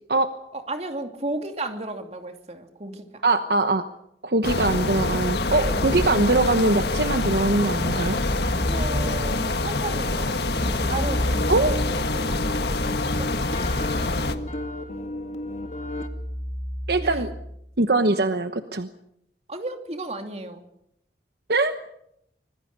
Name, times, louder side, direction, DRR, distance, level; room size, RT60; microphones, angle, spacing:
voice 1, 0.5-3.2 5.6-5.8 8.6-12.4 12.7-13.3 17.0-17.3 19.5-20.6, right 2 dB, 40° right, 5 dB, 2.7 m, -34 dB
voice 2, 3.2-3.8 4.2-8.2 11.5-11.8 16.9-17.3 17.8-18.9 21.5-21.7, right 2 dB, 60° right, 8 dB, 1.1 m, -22 dB
sound 1, 4.4-14.4, left 2 dB, 70° left, 1.7 m, -26 dB
Keyboard (musical), 5.7-6.3 7.8-9.3 10.6-17.6, equal, 15° left, 1.4 m, -33 dB
sound 2, 11.1-16.1, left 1 dB, 40° left, 2.2 m, -34 dB
25.5 x 20.5 x 6.7 m, 0.78 s
head